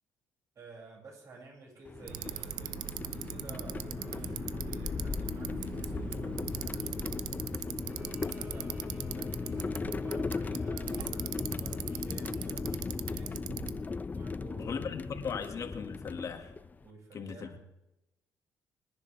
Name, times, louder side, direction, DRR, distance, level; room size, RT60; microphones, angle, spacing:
voice 1, 0.5-6.9 7.8-13.3 14.1-14.8 16.8-17.6, right 3 dB, 50° right, 6.7 m, -51 dB
sound 1, 1.9-16.9, left 4 dB, 25° left, 0.5 m, -37 dB
Bicycle, 2.1-13.8, right 14 dB, 85° right, 0.6 m, -41 dB
Bowed string instrument, 7.8-12.1, left 2 dB, 25° right, 2.3 m, -53 dB
voice 2, 14.6-16.5 17.1-17.6, left 6 dB, 50° left, 2.1 m, -38 dB
25.0 x 10.5 x 3.5 m
cardioid pair, 85°, 7 cm